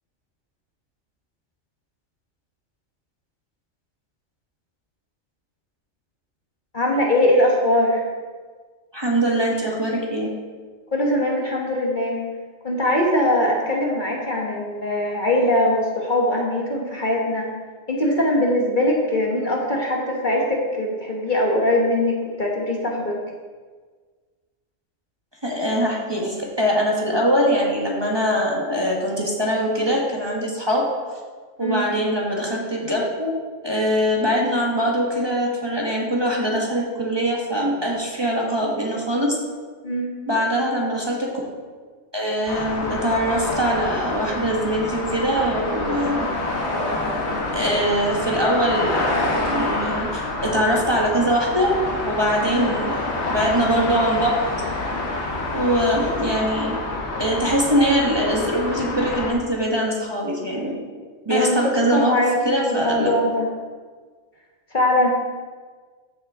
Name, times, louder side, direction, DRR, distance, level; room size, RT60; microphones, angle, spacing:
voice 1, 6.7-8.0 10.9-12.2 12.6-17.5 17.9-23.1 31.6-31.9 39.8-40.1 52.5-52.7 61.3-63.5 64.7-65.1, left 1 dB, 40° left, -1 dB, 1.3 m, -21 dB
voice 2, 8.9-10.3 25.4-30.9 31.6-33.3 33.6-39.4 40.3-41.3 42.1-46.3 47.5-51.7 52.0-54.3 55.5-56.8 57.2-60.8 61.2-63.1, equal, 20° right, -2 dB, 1.4 m, -22 dB
sound 1, 42.5-59.3, left 2 dB, 60° left, 1.7 m, -27 dB
14.0 x 6.3 x 3.7 m, 1.5 s
omnidirectional pair, 1.3 m